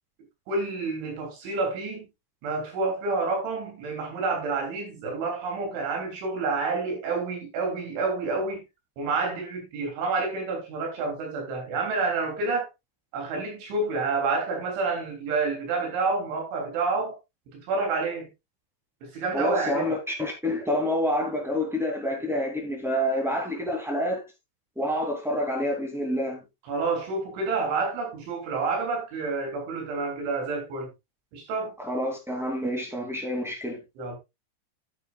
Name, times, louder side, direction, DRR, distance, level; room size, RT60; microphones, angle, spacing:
voice 1, 0.5-2.1 2.4-8.6 9.0-12.7 13.1-17.2 17.5-18.3 19.0-20.0 26.7-30.9 31.3-31.7 34.0-34.2, right 3 dB, 70° right, 5.6 m, -29 dB
voice 2, 19.3-24.2 24.7-26.4 31.8-33.8, equal, ahead, 0.9 m, -28 dB
11.5 x 9.4 x 2.4 m
omnidirectional pair, 5.6 m